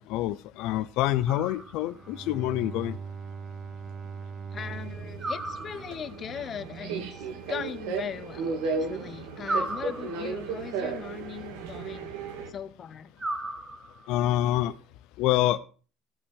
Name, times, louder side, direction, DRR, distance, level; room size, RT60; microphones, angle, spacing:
voice 1, 0.0-3.0 14.1-14.7 15.2-15.6, left 14 dB, 65° left, 12 dB, 0.7 m, -26 dB
sound 1, 1.3-2.1 5.2-6.2 9.4-10.5 13.2-14.2, right 1 dB, 10° right, 1.1 m, -35 dB
Bowed string instrument, 1.6-6.8, right 5 dB, 30° right, 0.6 m, -41 dB
voice 2, 4.5-12.1 12.5-13.1, left 7 dB, 30° left, 11 dB, 0.9 m, -39 dB
Subway metro underground, 4.6-12.5, right 4 dB, 85° right, 2.4 m, -35 dB
15.5 x 6.0 x 6.4 m, 0.38 s
cardioid pair, 155°, 0 cm